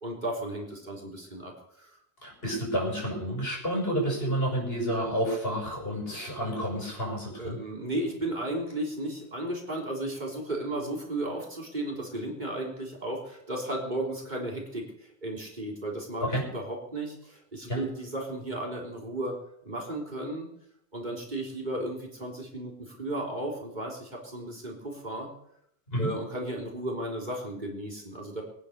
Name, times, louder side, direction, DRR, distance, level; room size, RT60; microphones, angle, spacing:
voice 1, 0.0-2.0 7.4-20.5 20.9-25.3 26.0-28.4, right 1 dB, 45° right, -1 dB, 3.9 m, -34 dB
voice 2, 2.2-7.6 16.2-16.4 17.7-17.8 25.9-26.1, equal, 65° left, -1 dB, 6.4 m, -30 dB
22.0 x 9.5 x 6.7 m, 0.76 s
omnidirectional pair, 1.1 m